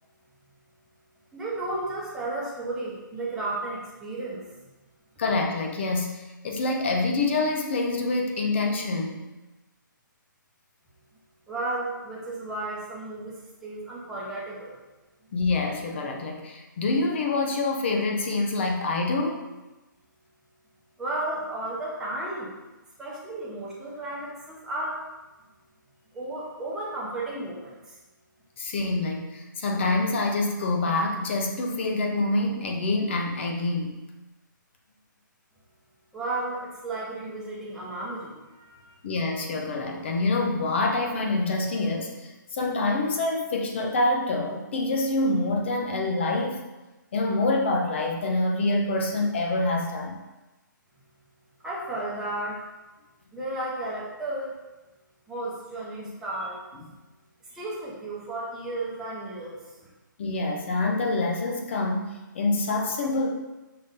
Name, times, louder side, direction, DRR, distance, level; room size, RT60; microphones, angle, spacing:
voice 1, 1.3-4.5 11.5-13.3 13.6-14.8 21.0-22.6 23.0-25.0 26.1-27.9 36.1-39.0 51.6-52.6 53.3-54.5 55.3-56.6 57.5-59.6, right 2 dB, 5° right, -7 dB, 0.7 m, -33 dB
voice 2, 5.2-9.2 15.3-19.5 28.6-34.0 39.0-46.6 47.1-50.2 60.2-63.3, left 2 dB, 35° left, 2 dB, 0.5 m, -26 dB
5.6 x 2.6 x 3.6 m, 1.1 s
hypercardioid pair, 160°, 11 cm